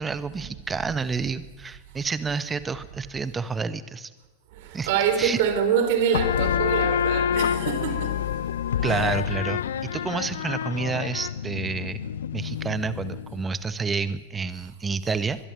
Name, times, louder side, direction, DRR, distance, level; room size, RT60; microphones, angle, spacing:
voice 1, 0.0-4.1 4.7-4.9 5.2-5.4 8.8-12.0 12.3-15.4, right 4 dB, 15° right, 1.3 m, -29 dB
voice 2, 4.5-8.4 8.8-9.1, right 7 dB, 50° right, 3.7 m, -26 dB
sound 1, 6.1-13.4, left 9 dB, 65° left, 0.7 m, -27 dB
23.0 x 21.5 x 6.4 m
figure-of-eight pair, 90°, 0 cm